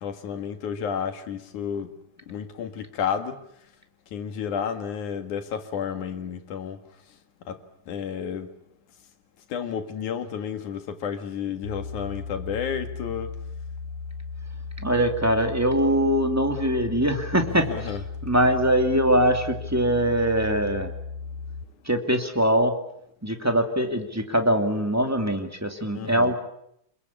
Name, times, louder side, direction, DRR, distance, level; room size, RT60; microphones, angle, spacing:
voice 1, 0.0-1.9 2.3-3.4 4.1-6.8 7.5-7.6 7.9-8.5 9.5-13.3 17.5-18.1 25.9-26.3, left 7 dB, 80° left, 3.3 m, -31 dB
sound 1, 11.6-21.6, left 4 dB, 65° left, 3.4 m, -36 dB
voice 2, 14.8-17.9 18.2-20.9 21.8-22.7 23.2-26.3, right 1 dB, 5° right, 2.0 m, -22 dB
27.0 x 22.0 x 8.5 m
omnidirectional pair, 3.4 m